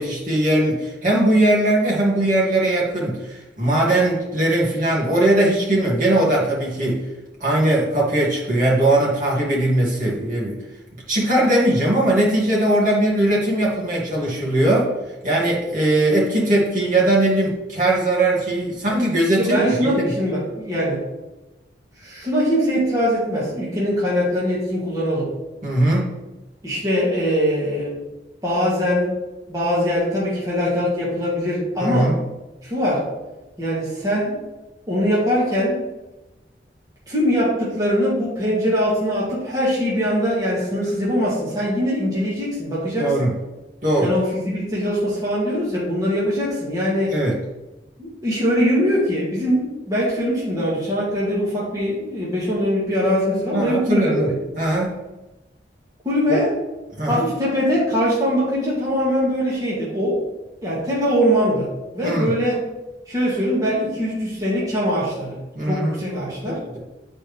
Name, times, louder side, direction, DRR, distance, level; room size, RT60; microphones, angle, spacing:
voice 1, 0.0-7.0 7.4-10.6 11.1-14.9 15.2-20.1 25.6-26.1 31.8-32.1 43.0-43.3 43.8-44.1 47.1-47.4 53.5-54.9 56.3-56.4 57.0-57.2 62.0-62.3 65.5-66.0 66.4-66.8, right 1 dB, 45° right, -5 dB, 2.2 m, -20 dB
voice 2, 19.4-21.0 22.0-25.3 26.6-28.0 28.4-29.1 29.5-32.2 32.6-33.1 33.6-34.4 34.9-35.8 37.1-43.3 44.0-47.2 48.0-54.6 56.1-56.5 57.1-60.2 60.6-61.7 61.9-62.6 63.1-65.4 65.7-66.6, equal, 20° right, -7 dB, 1.9 m, -22 dB
9.9 x 4.4 x 3.5 m, 1.0 s
head